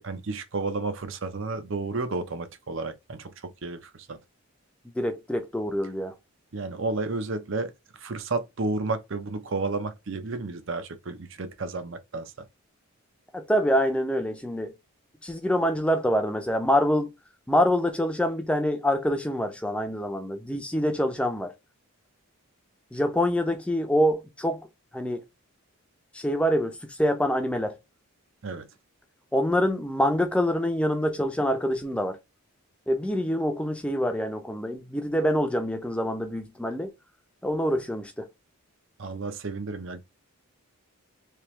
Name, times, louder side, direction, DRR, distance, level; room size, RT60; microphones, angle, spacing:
voice 1, 0.0-4.2 6.5-7.7 8.0-12.5 28.4-28.7 39.0-40.0, right 3 dB, 60° right, 0.6 m, -32 dB
voice 2, 5.0-6.1 13.3-14.7 15.2-17.1 17.5-21.5 22.9-24.7 24.9-25.2 26.1-27.7 29.3-32.2 32.9-36.9 37.4-38.3, equal, 5° left, 0.5 m, -25 dB
3.4 x 2.9 x 3.0 m
head